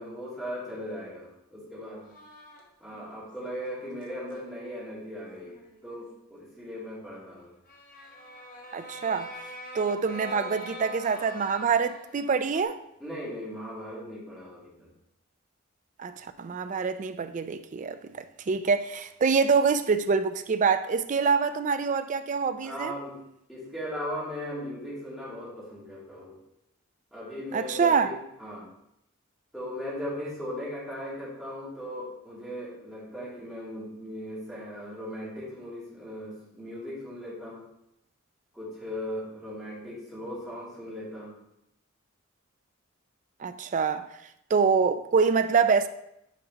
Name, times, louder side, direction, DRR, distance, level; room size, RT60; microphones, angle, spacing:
voice 1, 0.0-2.1 2.8-7.5 13.0-14.9 22.6-23.2 23.5-26.4 27.1-28.7 29.5-37.7 38.5-41.4, equal, ahead, 2.6 m, -38 dB
sound 1, 2.1-3.2 3.9-4.4 5.3-6.0 7.7-12.6, right 1 dB, 40° left, 1.1 m, -44 dB
voice 2, 8.7-9.3 9.7-12.8 16.0-22.9 27.5-28.1 43.4-44.1 44.5-45.9, right 5 dB, 35° right, 0.4 m, -25 dB
9.2 x 5.4 x 2.9 m
head